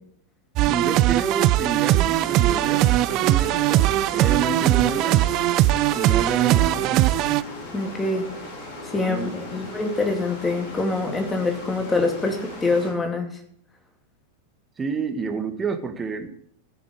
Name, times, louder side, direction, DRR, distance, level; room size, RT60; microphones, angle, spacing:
sound 1, 0.6-7.4, right 15 dB, 40° right, 0.5 m, -20 dB
voice 1, 0.7-3.9 4.1-5.3 5.9-7.1 9.0-9.8 14.8-16.3, right 5 dB, 15° right, 6 dB, 1.8 m, -29 dB
sound 2, 2.1-12.9, left 2 dB, 50° left, 4.8 m, -38 dB
voice 2, 7.7-8.3 8.9-13.3, left 3 dB, 15° left, 4 dB, 2.5 m, -25 dB
16.0 x 7.1 x 5.1 m, 0.66 s
figure-of-eight pair, 90°, 0 cm